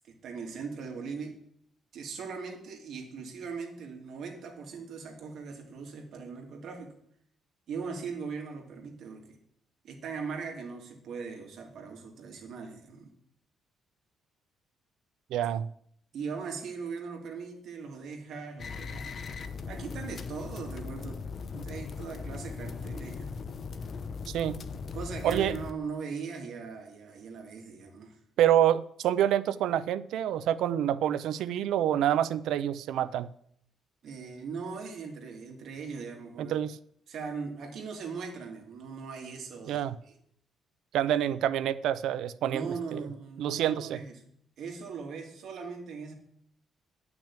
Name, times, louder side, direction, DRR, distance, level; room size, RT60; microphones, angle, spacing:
voice 1, 0.1-1.4 1.9-6.9 7.7-9.4 9.8-13.1 16.1-19.1 19.7-21.2 21.5-23.3 24.9-28.2 34.0-36.6 37.1-39.8 42.5-44.1 44.6-46.1, right 5 dB, 60° right, 2 dB, 2.6 m, -39 dB
voice 2, 15.3-15.7 24.3-24.6 25.2-25.5 28.4-33.3 36.4-36.8 39.7-40.0 40.9-42.7 42.9-43.0 43.4-44.0, right 11 dB, 85° right, 16 dB, 0.5 m, -27 dB
sound 1, 18.6-25.7, left 5 dB, 40° left, 0.7 m, -39 dB
10.5 x 6.1 x 8.8 m, 0.68 s
cardioid pair, 140°, 0 cm